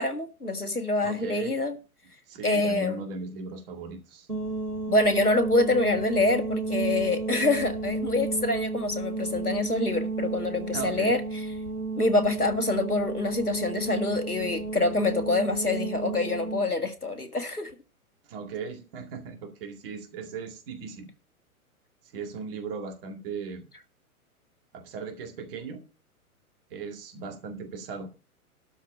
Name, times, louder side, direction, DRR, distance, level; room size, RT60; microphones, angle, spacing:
voice 1, 0.0-1.8 2.4-3.0 4.9-11.2 12.0-17.7, left 2 dB, 85° left, 1.9 m, -26 dB
voice 2, 1.0-1.5 2.3-4.3 10.7-11.2 18.2-21.1 22.1-23.7 24.7-25.8 26.7-28.1, right 5 dB, 40° right, 2.2 m, -37 dB
sound 1, 4.3-16.7, right 3 dB, 85° right, 2.6 m, -32 dB
12.5 x 4.7 x 8.4 m
figure-of-eight pair, 105°, 44 cm